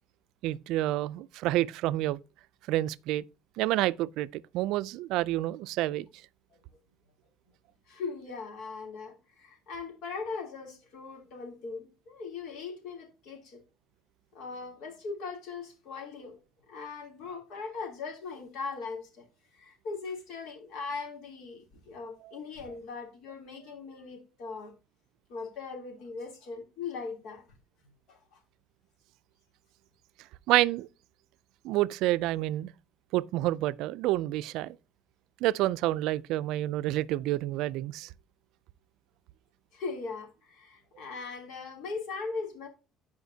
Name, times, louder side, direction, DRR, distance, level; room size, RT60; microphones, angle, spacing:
voice 1, 0.4-2.2 2.7-3.2 3.6-6.1 30.5-30.9 31.6-32.7 33.1-34.8 35.4-38.1, right 15 dB, 80° right, 0.3 m, -28 dB
voice 2, 7.9-13.6 14.3-16.4 16.7-19.2 19.5-24.7 25.3-27.5 28.1-28.4 39.7-42.7, left 4 dB, 75° left, 3.0 m, -39 dB
14.0 x 5.0 x 2.7 m
cardioid pair, 105°, 0 cm